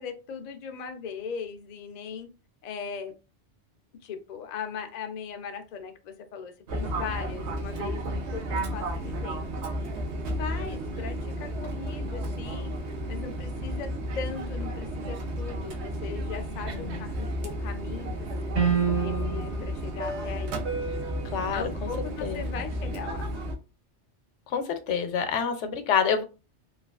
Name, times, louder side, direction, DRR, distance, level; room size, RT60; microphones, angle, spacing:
voice 1, 0.0-2.3 2.6-3.1 3.9-9.4 10.4-20.7 21.5-23.3, left 6 dB, 65° left, 7 dB, 0.4 m, -39 dB
Fixed-wing aircraft airplane, 6.7-23.6, right 1 dB, 70° right, 0.9 m, -32 dB
voice 2, 16.7-17.0 21.3-21.6 22.2-22.4 24.5-26.2, left 7 dB, 85° left, 8 dB, 0.9 m, -27 dB
sound 1, 18.6-19.6, right 7 dB, 90° right, 1.7 m, -26 dB
3.2 x 2.3 x 2.3 m, 0.30 s
omnidirectional pair, 1.2 m